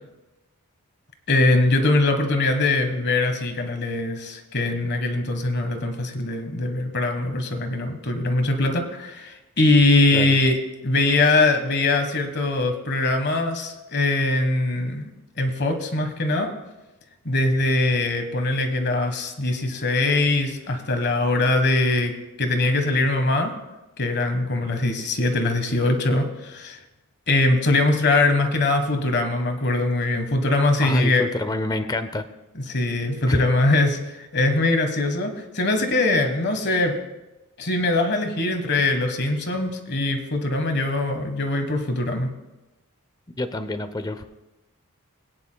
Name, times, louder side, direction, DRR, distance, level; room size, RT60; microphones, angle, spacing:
voice 1, 1.3-10.6 10.8-16.5 17.2-23.5 24.0-26.8 27.3-31.3 32.7-37.0 37.6-42.3, left 2 dB, 50° left, 6 dB, 1.4 m, -22 dB
voice 2, 30.8-32.2 33.3-33.4 43.4-44.2, left 2 dB, 15° left, 10 dB, 0.5 m, -27 dB
21.0 x 9.7 x 2.3 m, 1.0 s
head